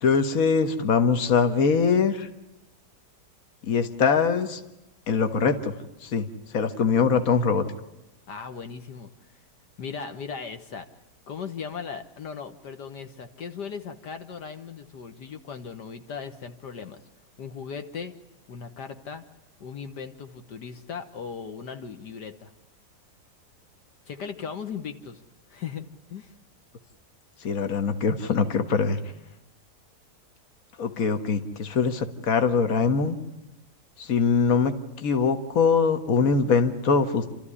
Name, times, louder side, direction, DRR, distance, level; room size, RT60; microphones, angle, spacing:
voice 1, 0.0-2.3 3.7-4.6 5.1-5.7 6.0-6.3 6.5-7.7 27.4-29.0 30.8-33.2 34.0-34.7 35.0-37.3, left 5 dB, 55° left, 9 dB, 1.8 m, -22 dB
voice 2, 8.3-9.1 9.8-10.9 11.3-17.0 17.4-18.1 18.5-19.2 19.6-22.5 24.1-25.2 25.5-25.9 26.1-26.3, left 6 dB, 75° left, 7 dB, 1.9 m, -37 dB
29.0 x 13.5 x 9.9 m, 0.95 s
omnidirectional pair, 1.8 m